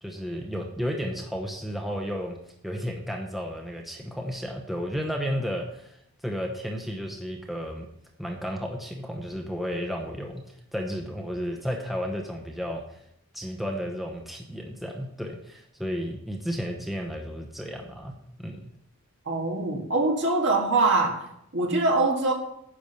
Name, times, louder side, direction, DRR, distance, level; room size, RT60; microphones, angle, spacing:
voice 1, 0.0-2.4 2.6-6.0 6.2-7.9 8.2-10.4 10.7-12.8 13.3-18.1 18.4-18.7, equal, ahead, 0 dB, 0.9 m, -32 dB
voice 2, 19.3-21.2 21.5-22.3, right 3 dB, 60° right, 1 dB, 1.8 m, -23 dB
10.0 x 6.0 x 5.4 m, 0.75 s
head